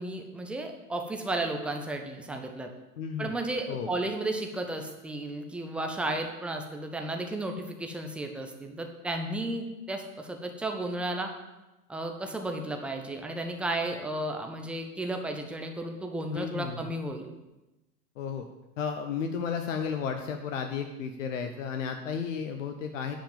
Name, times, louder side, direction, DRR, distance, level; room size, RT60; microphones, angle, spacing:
voice 1, 0.0-2.7 3.2-11.3 11.9-17.3, right 1 dB, ahead, 3 dB, 0.6 m, -33 dB
voice 2, 3.0-3.3 3.7-3.9 16.3-16.9 18.2-18.4 18.8-23.1, left 6 dB, 55° left, 6 dB, 0.9 m, -33 dB
10.0 x 5.1 x 7.2 m, 1.0 s
figure-of-eight pair, 95°, 48 cm